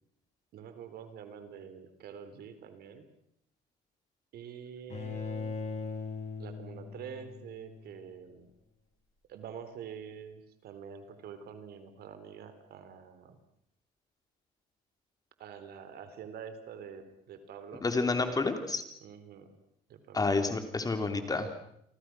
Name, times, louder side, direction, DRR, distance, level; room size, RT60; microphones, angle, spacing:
voice 1, 0.5-3.1 4.3-5.6 6.4-8.5 9.3-13.4 15.4-17.9 19.0-19.5 19.9-20.2, right 7 dB, 70° right, 10 dB, 3.9 m, -46 dB
Bowed string instrument, 4.9-8.0, left 5 dB, 40° left, 7.4 m, -39 dB
voice 2, 17.8-18.8 20.1-21.5, left 3 dB, 20° left, 7 dB, 3.3 m, -29 dB
29.5 x 24.0 x 6.2 m, 0.75 s
cardioid pair, 110°, 17 cm